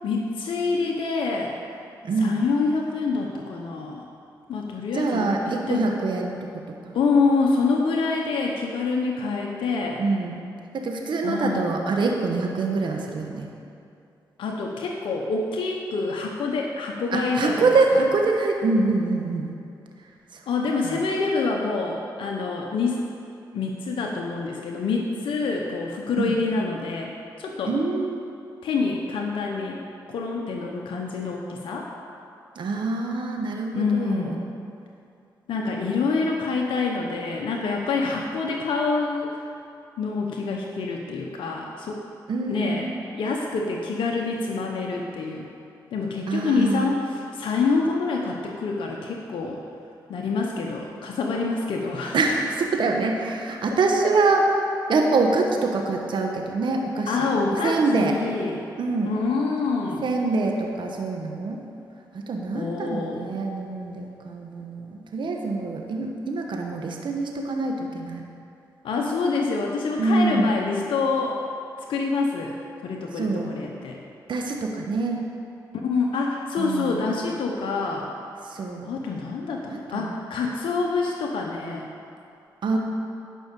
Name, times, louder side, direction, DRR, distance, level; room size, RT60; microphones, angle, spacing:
voice 1, 0.0-1.5 2.2-4.1 4.5-5.4 5.7-5.9 6.9-10.0 11.2-11.7 14.4-17.7 20.5-23.0 23.5-27.7 28.6-31.9 33.7-34.4 35.5-39.4 40.0-42.0 42.5-42.9 43.1-45.5 45.9-49.6 50.1-52.2 57.1-58.6 59.1-60.1 62.5-63.3 68.8-71.4 71.9-74.0 75.7-78.1 78.8-81.9, left 4 dB, 75° left, 0 dB, 0.8 m, -26 dB
voice 2, 2.0-2.4 4.9-6.5 6.9-7.0 10.0-10.4 10.7-13.5 17.1-19.5 20.3-20.4 20.8-21.0 26.1-26.4 27.7-28.2 32.5-34.4 42.3-42.9 46.3-47.0 52.1-54.5 54.9-57.3 57.6-58.1 58.8-59.1 60.0-61.6 62.1-68.2 70.0-70.6 73.1-73.5 74.3-75.2 76.6-77.0 78.4-78.9 79.7-80.1 82.6-82.8, right 3 dB, 65° right, 1 dB, 1.1 m, -25 dB
10.5 x 5.5 x 6.7 m, 2.6 s
supercardioid pair, 50°, 9 cm